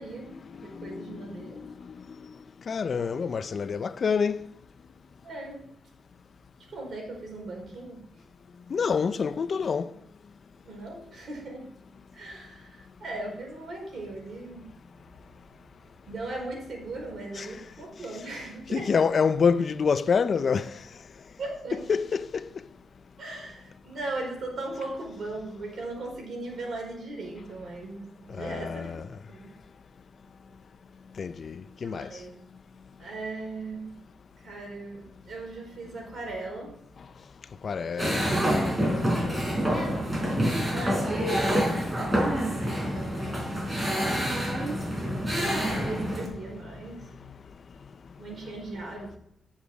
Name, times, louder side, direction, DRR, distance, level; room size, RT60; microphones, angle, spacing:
voice 1, 0.0-1.7 5.2-5.6 6.6-8.0 10.6-11.7 12.1-14.7 16.1-19.0 21.4-21.9 23.2-29.0 29.3-29.5 31.8-32.4 33.0-33.9 34.4-36.7 38.0-38.5 40.7-43.9 45.3-47.1 48.2-49.2, right 2 dB, 60° right, 4.7 m, -38 dB
voice 2, 0.8-1.7 2.7-4.4 8.7-9.9 17.4-17.5 18.7-20.8 21.9-22.5 28.3-29.0 31.2-32.1 37.6-39.4, left 6 dB, 55° left, 0.5 m, -27 dB
sound 1, 38.0-46.3, equal, 25° right, 4.2 m, -27 dB
10.0 x 7.2 x 4.8 m
cardioid pair, 85°, 0 cm